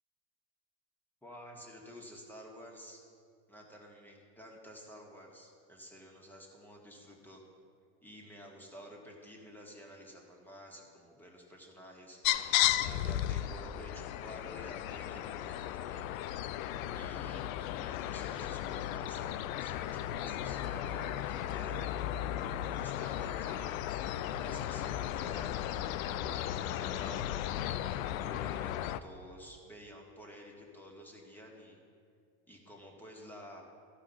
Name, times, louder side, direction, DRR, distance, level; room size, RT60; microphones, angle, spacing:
voice 1, 1.2-3.0 3.5-7.4 8.0-12.2 12.8-16.1 16.9-21.8 22.6-25.6 26.2-31.8 32.5-33.6, equal, 5° left, -1 dB, 1.7 m, -51 dB
sound 1, 12.2-29.0, left 12 dB, 90° left, 0.5 m, -35 dB
14.5 x 4.8 x 5.6 m, 2.2 s
supercardioid pair, 115°, 40 cm